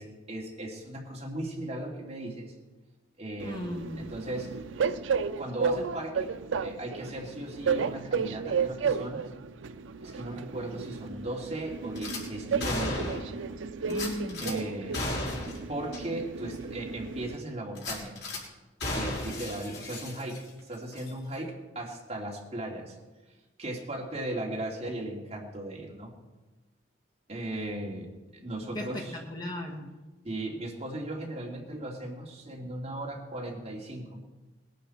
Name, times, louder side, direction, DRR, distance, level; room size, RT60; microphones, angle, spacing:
voice 1, 0.0-2.5 3.2-4.5 5.4-9.2 10.0-13.2 14.4-15.2 15.7-18.2 18.9-22.9 23.6-26.1 27.3-29.2 30.2-34.2, right 1 dB, 30° right, -2 dB, 2.7 m, -37 dB
voice 2, 3.4-4.1 13.9-14.5 28.7-29.9, left 1 dB, 20° left, 1 dB, 1.4 m, -36 dB
Train, 3.4-17.4, right 5 dB, 80° right, 0.5 m, -33 dB
Gunshot gunfire / Glass, 12.0-12.2 12.6-13.4 13.9-14.5 14.9-15.6 15.9-16.0 16.5-16.6 17.7-18.4 18.8-20.6 20.9-21.1, left 2 dB, 60° left, 4.0 m, -34 dB
20.5 x 11.5 x 4.4 m, 1.2 s
head